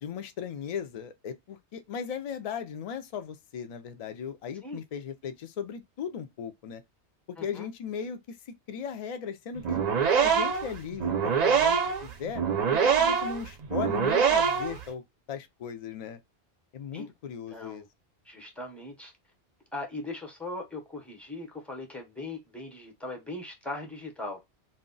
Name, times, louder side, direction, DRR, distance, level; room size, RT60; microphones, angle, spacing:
voice 1, 0.0-6.8 7.3-9.8 10.1-12.4 12.7-15.0 15.3-16.2 16.7-17.8, left 7 dB, 70° left, 0.3 m, -37 dB
voice 2, 7.4-7.7 16.9-17.1 17.5-17.9 18.3-19.1 19.7-24.4, left 2 dB, ahead, 0.6 m, -39 dB
sound 1, 9.6-14.8, right 6 dB, 55° right, 0.5 m, -25 dB
2.2 x 2.1 x 3.8 m
omnidirectional pair, 1.2 m